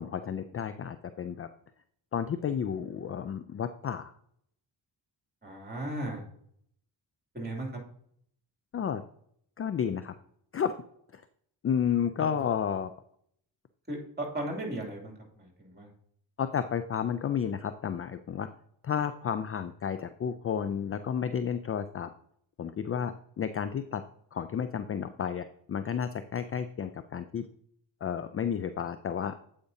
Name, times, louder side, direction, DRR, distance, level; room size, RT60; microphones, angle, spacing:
voice 1, 0.0-1.5 2.1-4.1 8.7-9.0 9.6-10.1 10.5-10.7 11.6-12.9 16.4-18.5 18.8-22.1 22.6-24.0 24.3-27.4 28.0-29.3, left 8 dB, 35° left, 11 dB, 0.4 m, -31 dB
voice 2, 5.4-6.2 7.3-7.8 13.9-15.9, right 1 dB, 20° right, 0 dB, 2.6 m, -36 dB
8.2 x 5.1 x 2.7 m, 0.67 s
cardioid pair, 65°, 45 cm